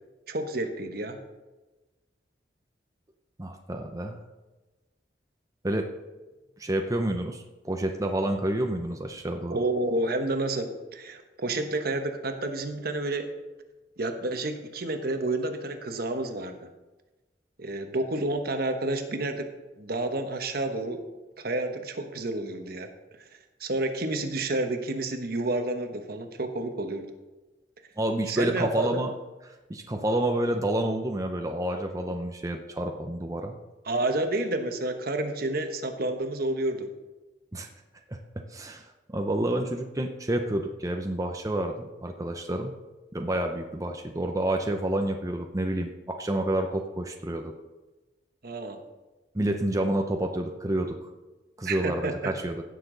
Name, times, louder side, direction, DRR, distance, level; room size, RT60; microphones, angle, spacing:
voice 1, 0.3-1.2 9.5-13.2 14.0-16.6 17.6-19.5 19.8-21.0 21.4-22.9 23.6-27.1 28.3-29.0 33.9-36.9 48.4-48.8 51.7-52.1, right 2 dB, 60° right, 6 dB, 1.1 m, -30 dB
voice 2, 3.4-4.2 5.6-5.9 6.6-9.6 28.0-29.1 29.4-33.6 37.5-37.7 38.1-38.2 38.5-42.7 43.1-47.5 49.3-51.1 51.6-52.6, right 1 dB, 20° right, 3 dB, 0.7 m, -29 dB
16.5 x 6.8 x 3.9 m, 1.1 s
head